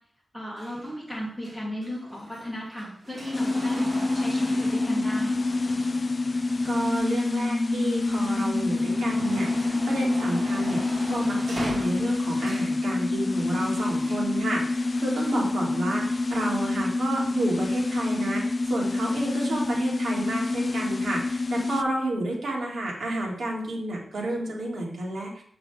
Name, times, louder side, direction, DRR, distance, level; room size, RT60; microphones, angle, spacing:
voice 1, 0.3-5.4, equal, 5° right, -5 dB, 2.8 m, -35 dB
sound 1, 0.6-7.8 8.2-12.8 13.8-14.3 15.2-15.3, right 1 dB, 35° right, 2.5 m, -40 dB
sound 2, 3.3-21.8, left 2 dB, 35° left, 0.3 m, -27 dB
voice 2, 6.3-25.4, right 1 dB, 75° right, -3 dB, 2.2 m, -30 dB
7.0 x 5.9 x 3.5 m, 0.62 s
wide cardioid pair, 125°, 0 cm